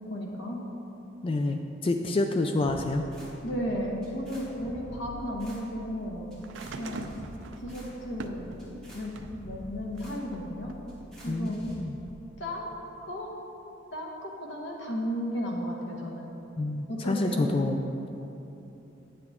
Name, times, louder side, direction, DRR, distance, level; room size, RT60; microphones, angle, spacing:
voice 1, 0.1-0.6 3.4-6.3 6.8-7.2 7.6-10.7 11.2-11.6 12.4-12.8 13.1-13.3 13.9-16.3 16.9-17.5, equal, 65° left, -1 dB, 1.2 m, -34 dB
voice 2, 1.2-3.0 11.3-12.0 16.6-18.1, left 2 dB, 30° left, 5 dB, 0.3 m, -28 dB
sound 1, 2.6-11.7, equal, 5° left, 2.0 m, -47 dB
sound 2, 6.4-9.4 9.9-11.1 12.1-12.2, right 3 dB, 65° right, 0.5 m, -43 dB
9.6 x 7.9 x 3.6 m, 2.9 s
head